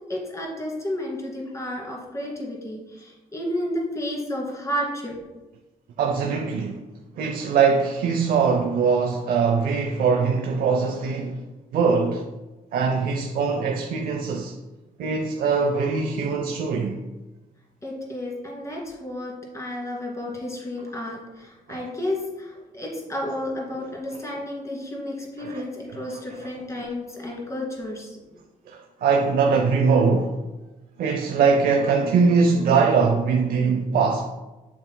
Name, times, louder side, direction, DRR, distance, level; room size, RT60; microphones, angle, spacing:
voice 1, 0.1-5.2 17.8-28.2, left 1 dB, 20° left, 2.3 m, -32 dB
voice 2, 6.0-6.8 7.2-11.4 11.7-12.2 12.7-14.5 15.0-17.0 21.7-21.8 25.4-25.6 28.7-30.4 31.0-34.2, right 5 dB, 85° right, 0.6 m, -22 dB
8.2 x 7.0 x 2.2 m
cardioid pair, 135°, 15 cm